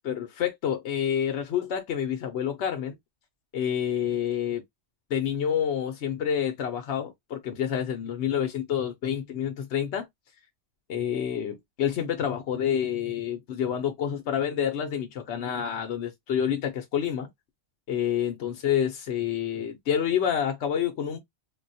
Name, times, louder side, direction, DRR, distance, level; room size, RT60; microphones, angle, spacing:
voice 1, 0.0-3.0 3.5-4.6 5.1-10.1 10.9-17.3 17.9-21.2, left 9 dB, 75° left, 0.9 m, -28 dB
3.7 x 2.2 x 2.6 m
omnidirectional pair, 1.2 m